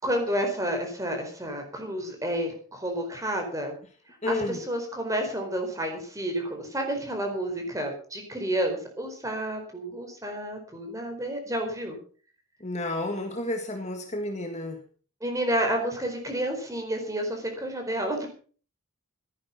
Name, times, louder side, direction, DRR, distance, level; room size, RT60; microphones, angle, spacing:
voice 1, 0.0-3.8 4.1-12.0 15.2-18.3, right 1 dB, 15° right, 3 dB, 4.4 m, -30 dB
voice 2, 4.2-4.6 12.6-14.8, left 1 dB, 30° left, 5 dB, 1.8 m, -31 dB
15.0 x 10.5 x 6.0 m, 0.42 s
head